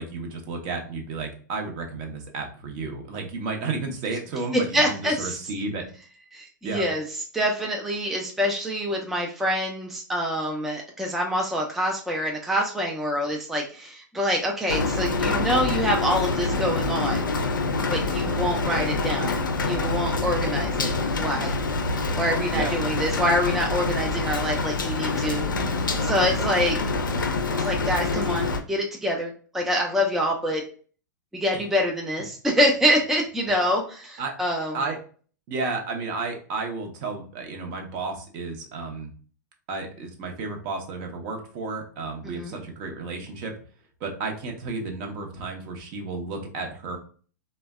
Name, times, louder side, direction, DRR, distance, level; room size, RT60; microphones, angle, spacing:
voice 1, 0.0-5.8 6.6-6.9 22.5-22.7 34.2-34.3 34.7-35.0 35.5-39.1 39.7-43.5 44.0-47.0, right 3 dB, 45° right, 3 dB, 0.7 m, -32 dB
voice 2, 4.5-5.4 6.3-7.0 7.3-17.3 17.9-21.5 22.2-25.4 25.9-26.8 27.6-30.6 31.3-34.8 42.2-42.6, equal, 5° right, 0 dB, 0.4 m, -26 dB
Rain, 14.7-28.6, left 3 dB, 85° left, 0.4 m, -26 dB
3.2 x 2.1 x 2.2 m, 0.42 s
hypercardioid pair, 100°, 10 cm